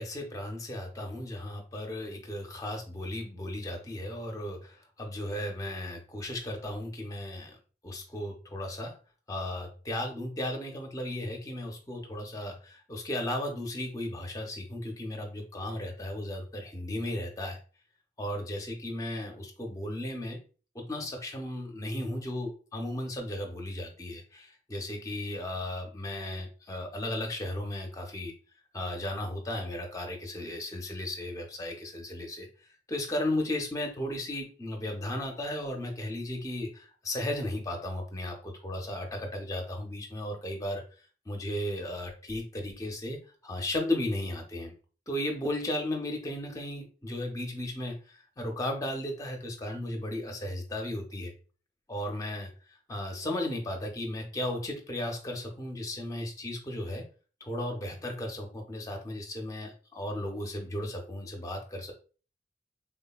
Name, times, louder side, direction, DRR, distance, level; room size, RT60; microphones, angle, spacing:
voice 1, 0.0-7.6 7.8-9.0 9.3-17.6 18.2-20.4 20.7-28.3 28.7-32.5 32.9-40.8 41.3-43.2 43.4-44.7 45.1-51.3 51.9-57.0 57.4-61.9, left 1 dB, 20° left, 2 dB, 0.5 m, -35 dB
3.4 x 2.1 x 2.2 m, 0.37 s
head